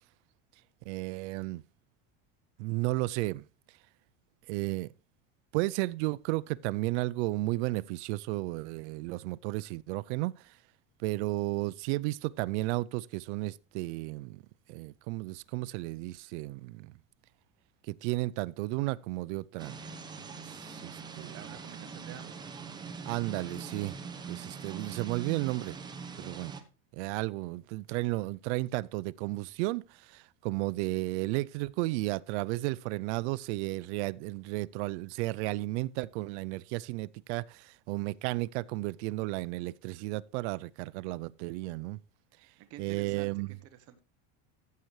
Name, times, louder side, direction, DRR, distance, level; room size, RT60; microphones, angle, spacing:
voice 1, 0.9-1.6 2.6-3.4 4.5-4.9 5.5-10.5 11.0-14.4 14.7-16.9 17.9-21.3 23.1-24.0 24.3-25.8 26.2-26.5 26.9-42.0 42.8-43.6, right 20 dB, 90° right, 0.5 m, -33 dB
sound 1, 19.6-26.6, right 5 dB, 15° right, 0.8 m, -43 dB
voice 2, 21.3-22.5 42.6-44.0, right 11 dB, 45° right, 1.0 m, -49 dB
15.0 x 6.7 x 3.2 m
cardioid pair, 165°, 33 cm